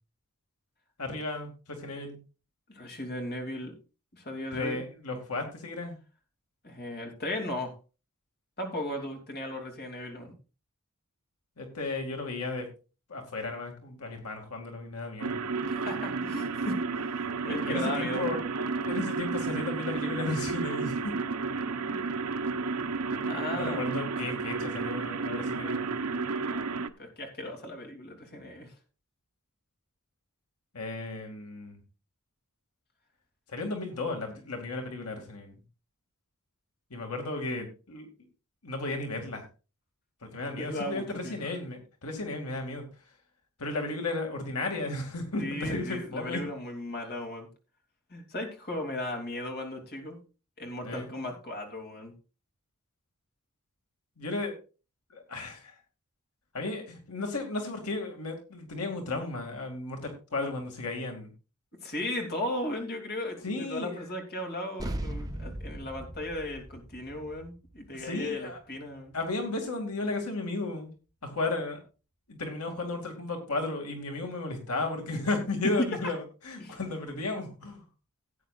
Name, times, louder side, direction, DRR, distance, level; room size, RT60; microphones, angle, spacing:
voice 1, 1.0-1.5 1.8-2.2 4.5-6.0 11.6-12.6 13.1-15.4 17.6-18.4 18.9-21.1 21.9-22.0 23.5-26.0 30.7-31.8 33.5-35.5 36.9-38.1 38.6-39.4 40.3-42.8 43.6-46.4 50.8-51.1 54.2-54.6 55.1-55.7 56.5-61.3 63.4-64.0 67.9-68.6 69.1-70.9 71.2-71.8 72.3-77.8, left 2 dB, 80° left, 3 dB, 2.4 m, -34 dB
voice 2, 2.7-3.7 4.1-4.8 6.6-7.7 8.6-10.3 15.7-18.4 18.8-18.9 23.3-23.8 27.0-28.7 40.6-41.5 45.4-47.5 48.1-50.2 50.6-52.1 61.8-69.1 75.6-75.9 76.6-76.8, left 1 dB, 45° left, 2 dB, 3.0 m, -36 dB
sound 1, 15.2-26.9, right 4 dB, 75° right, 0.8 m, -32 dB
sound 2, 64.8-69.6, right 1 dB, 15° right, 0.9 m, -39 dB
17.0 x 9.2 x 2.5 m, 0.33 s
head